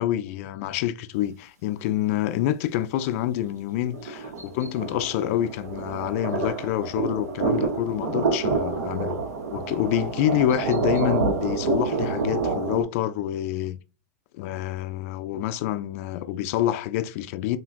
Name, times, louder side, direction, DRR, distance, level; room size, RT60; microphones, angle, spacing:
voice 1, 0.0-9.2 9.5-13.8 14.3-17.6, left 12 dB, 60° left, 0.4 m, -27 dB
sound 1, 3.8-12.8, right 4 dB, 85° right, 0.8 m, -28 dB
3.7 x 2.3 x 2.4 m
hypercardioid pair, 115°, 9 cm